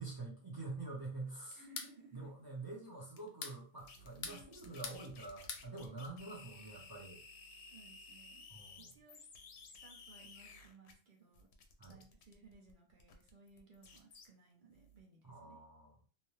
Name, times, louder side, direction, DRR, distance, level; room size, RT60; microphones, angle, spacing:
voice 1, 0.0-1.6 2.1-7.2 8.5-8.9 11.8-12.0 15.2-16.1, right 3 dB, 25° right, -4 dB, 0.7 m, -47 dB
sound 1, 1.5-1.9 3.2-3.6 4.0-5.0 5.3-5.7, left 5 dB, 55° left, 0.6 m, -45 dB
voice 2, 1.6-2.3 4.2-4.5 5.8-6.0 7.7-8.5 8.8-9.3 9.7-11.5 11.9-15.6, right 3 dB, 50° right, -1 dB, 1.0 m, -61 dB
sound 2, 3.8-10.9 11.3-14.3 14.7-15.0, left 3 dB, 90° left, 0.9 m, -56 dB
2.8 x 2.2 x 3.1 m, 0.39 s
omnidirectional pair, 1.1 m